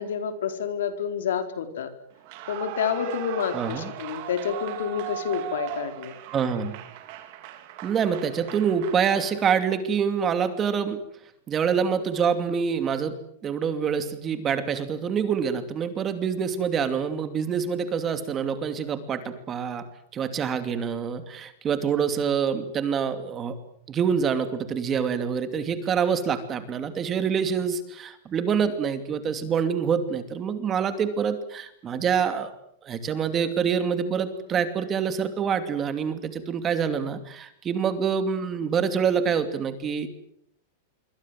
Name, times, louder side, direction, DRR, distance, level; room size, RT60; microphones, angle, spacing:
voice 1, 0.0-1.9 2.5-6.1, left 7 dB, 85° left, 8 dB, 4.4 m, -29 dB
Clapping / Cheering / Applause, 2.2-9.6, right 12 dB, 45° right, 3.6 m, -38 dB
voice 2, 3.5-3.9 6.3-6.8 7.8-11.0 11.5-13.1 13.4-19.8 20.1-23.6 23.9-32.5 32.8-40.1, right 7 dB, 20° right, 9 dB, 2.7 m, -26 dB
26.5 x 24.5 x 7.7 m, 0.71 s
supercardioid pair, 160°, 0 cm